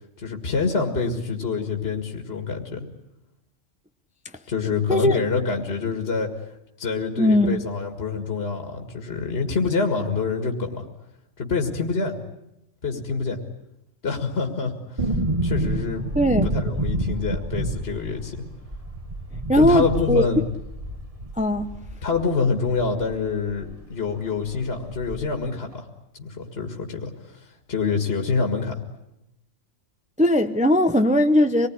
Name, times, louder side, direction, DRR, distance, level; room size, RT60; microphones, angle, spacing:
voice 1, 0.2-2.8 4.5-6.3 6.8-10.8 11.4-12.2 12.8-13.4 14.0-15.1 15.4-16.1 16.4-18.4 19.5-20.4 22.0-25.9 26.2-28.8, left 4 dB, 50° left, 4 dB, 2.2 m, -26 dB
voice 2, 7.2-7.6 16.2-16.5 19.5-20.3 21.4-21.7 30.2-31.7, left 1 dB, 5° right, 8 dB, 0.7 m, -19 dB
sound 1, 15.0-23.8 24.1-24.2 24.4-25.5 25.7-25.8, right 1 dB, 25° right, 1.7 m, -29 dB
25.5 x 19.5 x 9.9 m, 0.87 s
omnidirectional pair, 1.3 m